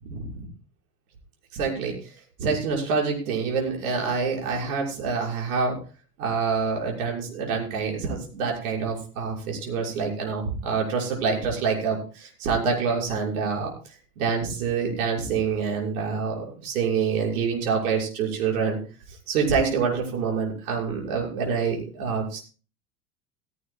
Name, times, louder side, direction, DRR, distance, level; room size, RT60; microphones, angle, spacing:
voice 1, 0.0-0.4 1.5-1.9 2.4-5.8 6.2-13.7 14.2-18.8 19.3-22.4, right 5 dB, 65° right, -1 dB, 6.5 m, -26 dB
16.5 x 16.5 x 2.4 m, 0.36 s
figure-of-eight pair, 75°, 47 cm